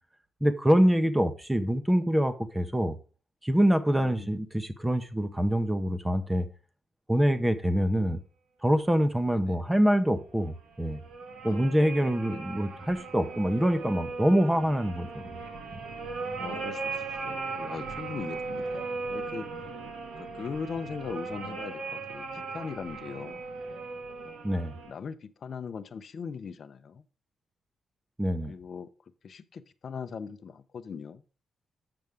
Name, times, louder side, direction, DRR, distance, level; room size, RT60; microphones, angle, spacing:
voice 1, 0.4-3.0 3.4-6.5 7.1-8.2 8.6-11.0 11.4-15.2 24.4-24.7 28.2-28.5, equal, 5° right, 0.7 m, -25 dB
voice 2, 4.0-4.3 9.3-9.6 11.5-11.8 12.3-12.5 16.3-19.5 20.2-23.4 24.2-24.4 24.9-27.0 28.5-28.9 29.2-31.2, left 6 dB, 40° left, 0.6 m, -40 dB
sound 1, 10.5-24.9, right 3 dB, 70° right, 1.4 m, -38 dB
7.7 x 7.0 x 3.5 m
wide cardioid pair, 165°, 0 cm